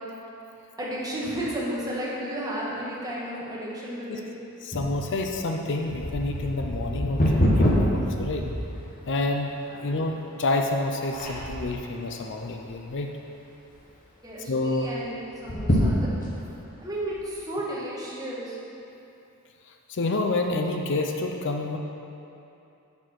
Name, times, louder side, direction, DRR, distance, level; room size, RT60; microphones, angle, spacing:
voice 1, 0.8-4.3 9.7-9.9 14.2-16.1 16.8-18.6, right 1 dB, 15° right, -7 dB, 1.6 m, -33 dB
voice 2, 4.6-8.4 9.1-9.5 9.8-13.1 14.5-14.9 19.7-21.8, left 2 dB, 55° left, 3 dB, 0.5 m, -28 dB
sound 1, 4.7-9.2 9.8-9.9 10.5-10.8 11.1-11.8 12.3-13.0 13.4-13.5 13.7-13.8 15.3-16.5 17.1-17.2, equal, 40° left, 1.3 m, -25 dB
7.1 x 6.4 x 5.9 m, 2.8 s
head